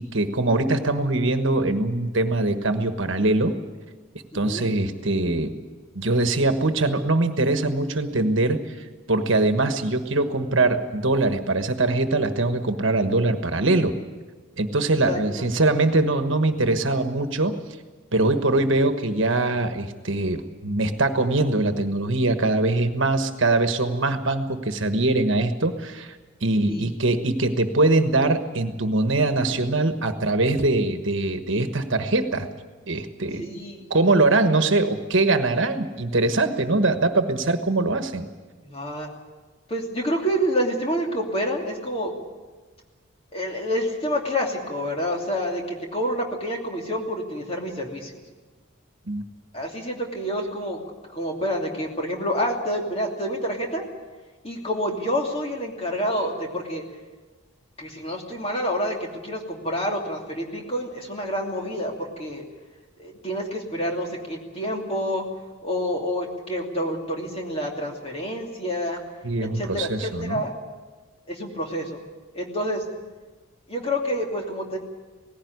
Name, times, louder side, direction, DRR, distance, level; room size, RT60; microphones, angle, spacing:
voice 1, 0.0-3.5 4.3-5.5 5.9-13.9 14.6-17.6 18.1-26.2 26.4-32.5 32.9-33.4 33.9-38.3 49.1-49.2 69.2-70.4, right 2 dB, 60° right, 8 dB, 1.4 m, -22 dB
voice 2, 4.3-4.7 15.1-15.2 26.7-26.9 33.4-33.8 38.6-39.1 39.7-42.1 43.3-48.2 49.5-50.8 51.1-53.8 54.4-56.8 57.8-59.0 59.2-62.4 63.0-65.2 65.6-69.0 69.5-70.5 71.3-72.0 72.3-72.8 73.7-74.8, equal, 30° left, 1 dB, 2.8 m, -28 dB
18.5 x 16.0 x 9.5 m, 1.3 s
head